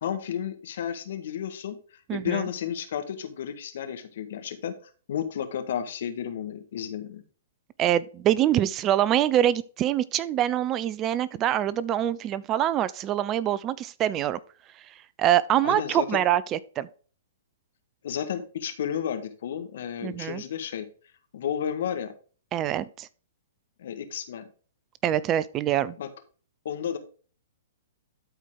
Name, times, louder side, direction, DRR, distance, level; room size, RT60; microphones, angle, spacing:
voice 1, 0.0-4.7 5.1-7.2 15.6-16.1 18.0-20.9 21.3-22.1 23.8-24.5 26.0-26.1 26.7-27.0, left 9 dB, 60° left, 1.6 m, -32 dB
voice 2, 2.1-2.4 7.8-14.4 15.2-16.9 20.0-20.4 22.5-23.1 25.0-26.0, right 11 dB, 30° right, 0.5 m, -25 dB
12.5 x 4.5 x 3.8 m
hypercardioid pair, 120°, 0 cm